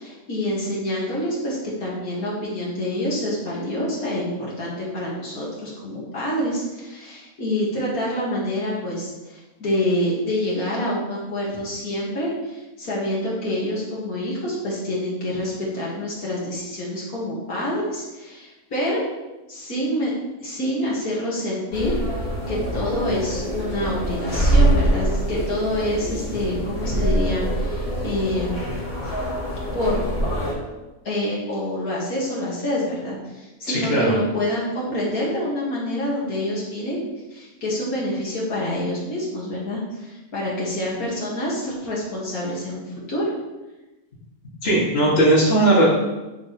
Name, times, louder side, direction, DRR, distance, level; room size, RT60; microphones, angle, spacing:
voice 1, 0.0-19.0 19.5-20.1 20.4-22.0 22.5-28.7 29.7-30.0 31.0-37.0 37.3-42.8 43.1-43.3, left 1 dB, 80° left, -5 dB, 2.5 m, -27 dB
sound 1, 21.7-30.5, right 1 dB, 20° left, 3.0 m, -24 dB
voice 2, 33.7-34.2 44.6-45.9, right 1 dB, 45° left, -6 dB, 2.5 m, -18 dB
8.7 x 7.6 x 3.2 m, 1.1 s
omnidirectional pair, 1.5 m